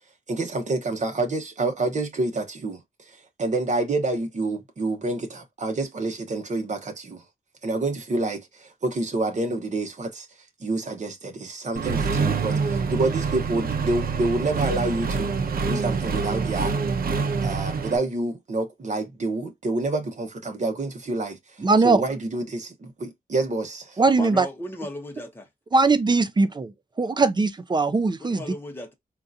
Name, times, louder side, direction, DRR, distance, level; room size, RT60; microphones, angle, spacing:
voice 1, 0.3-2.8 3.4-7.2 7.6-10.3 10.6-15.3 15.6-16.7 17.4-21.4 21.8-24.0, right 2 dB, 50° right, 1.0 m, -28 dB
Accelerating revving vroom, 11.8-18.0, right 5 dB, 70° right, 0.7 m, -26 dB
voice 2, 21.6-22.0 24.0-24.5 25.7-28.4, right 3 dB, 30° right, 0.4 m, -20 dB
voice 3, 24.2-25.5 28.2-28.9, left 1 dB, 15° left, 0.9 m, -35 dB
3.8 x 2.5 x 2.6 m
wide cardioid pair, 135°, 16 cm